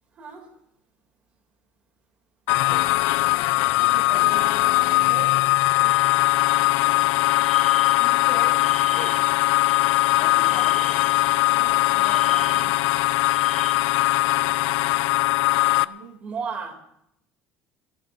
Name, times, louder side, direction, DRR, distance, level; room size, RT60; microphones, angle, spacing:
sound 1, 2.5-15.8, left 18 dB, 85° left, 0.5 m, -20 dB
voice 1, 3.7-5.4 5.8-5.9 10.0-10.7 11.4-12.8 15.7-16.2, right 6 dB, 65° right, -3 dB, 7.1 m, -41 dB
sound 2, 5.8-13.7, left 1 dB, 5° left, 7.0 m, -39 dB
voice 2, 8.0-8.6 10.2-10.9 14.1-14.5, left 5 dB, 35° left, -1 dB, 4.6 m, -38 dB
voice 3, 16.2-16.7, right 6 dB, 35° right, 2 dB, 2.9 m, -34 dB
29.5 x 17.0 x 2.7 m, 0.75 s
cardioid pair, 160°, 4 cm